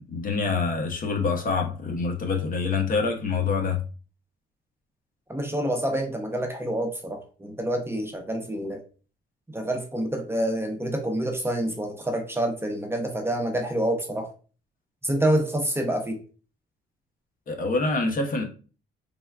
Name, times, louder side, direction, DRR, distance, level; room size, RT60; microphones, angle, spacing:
voice 1, 0.1-3.8 17.5-18.5, left 4 dB, 45° left, 0.6 m, -26 dB
voice 2, 5.3-8.8 9.5-14.3 15.0-16.2, right 1 dB, 10° right, 0.6 m, -27 dB
3.4 x 2.2 x 2.2 m
cardioid pair, 90°, 20 cm